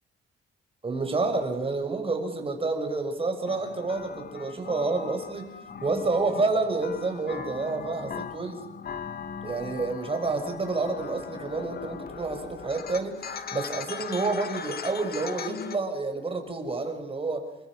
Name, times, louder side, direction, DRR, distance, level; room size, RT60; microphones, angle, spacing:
voice 1, 0.8-5.5 5.8-8.7 9.4-17.4, right 3 dB, 30° right, 6 dB, 6.2 m, -29 dB
sound 1, 3.5-15.8, left 6 dB, 50° left, 2.2 m, -39 dB
29.5 x 24.0 x 6.4 m, 0.96 s
cardioid pair, 90°, 20 cm